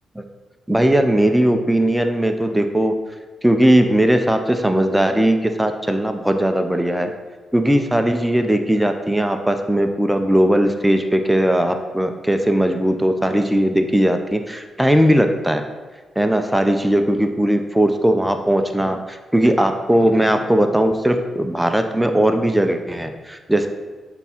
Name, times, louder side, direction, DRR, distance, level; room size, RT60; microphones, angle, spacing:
voice 1, 0.7-2.9 3.4-7.1 7.5-15.6 16.2-23.7, right 1 dB, 5° right, 6 dB, 0.6 m, -18 dB
6.8 x 3.6 x 5.7 m, 1.4 s
cardioid pair, 75°, 0 cm